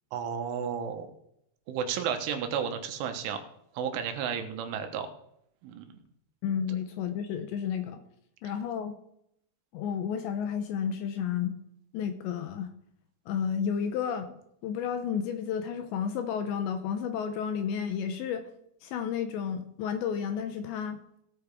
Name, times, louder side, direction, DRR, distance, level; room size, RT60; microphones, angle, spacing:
voice 1, 0.1-1.1 1.7-3.4 3.8-5.1 5.6-5.9, right 7 dB, 80° right, 7 dB, 3.6 m, -32 dB
voice 2, 6.4-8.0 8.4-8.9 9.7-11.6 11.9-12.7 13.3-14.3 14.6-18.5 18.8-21.0, left 7 dB, 80° left, 8 dB, 2.7 m, -31 dB
17.5 x 8.6 x 3.6 m, 0.74 s
omnidirectional pair, 5.7 m